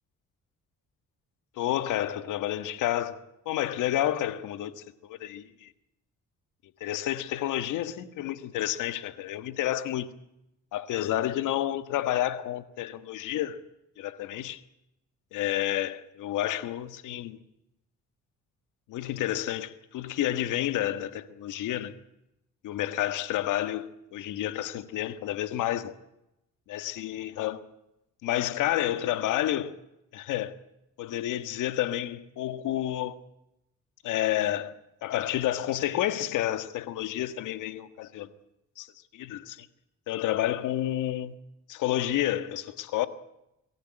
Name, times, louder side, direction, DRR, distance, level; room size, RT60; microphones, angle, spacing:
voice 1, 1.6-5.7 6.8-10.1 10.7-13.6 14.0-14.6 15.3-17.4 18.9-21.9 22.6-25.9 26.7-27.6 28.2-29.7 30.1-30.5 31.0-33.2 34.0-38.3 38.8-39.7 40.1-41.4 41.7-43.1, left 13 dB, 90° left, 1.7 m, -30 dB
24.5 x 15.0 x 10.0 m
cardioid pair, 90°, 30 cm